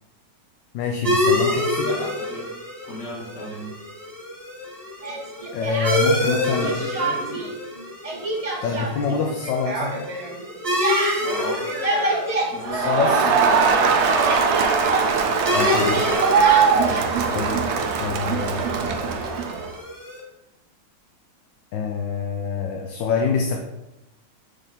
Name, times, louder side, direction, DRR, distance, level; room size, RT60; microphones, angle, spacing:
voice 1, 0.7-1.9 5.5-6.7 8.6-10.0 12.7-13.2 15.5-16.1 17.3-17.6 18.0-18.9 21.7-23.6, left 5 dB, 80° left, 2 dB, 1.4 m, -25 dB
sound 1, 1.0-20.2, left 1 dB, 10° right, 1.3 m, -28 dB
voice 2, 1.8-2.5 2.9-3.7 6.2-7.5 11.2-11.7 12.5-14.0 17.0-17.4, left 1 dB, 65° left, -6 dB, 2.9 m, -36 dB
Speech, 5.0-6.3 6.6-7.5 7.8-13.5 13.7-17.1, right 2 dB, 35° right, 0.6 m, -28 dB
Crowd, 12.6-19.7, right 5 dB, 80° right, 0.6 m, -21 dB
6.5 x 3.8 x 4.2 m, 0.94 s
omnidirectional pair, 1.9 m